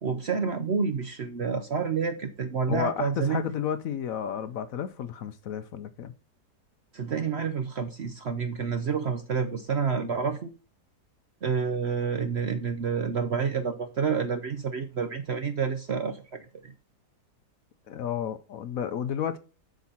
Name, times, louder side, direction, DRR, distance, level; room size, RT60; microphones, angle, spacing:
voice 1, 0.0-3.4 6.9-10.5 11.4-16.7, right 6 dB, 55° right, 0.8 m, -29 dB
voice 2, 2.7-6.1 17.9-19.4, left 8 dB, 65° left, 1.0 m, -32 dB
8.2 x 6.0 x 4.2 m
omnidirectional pair, 1.8 m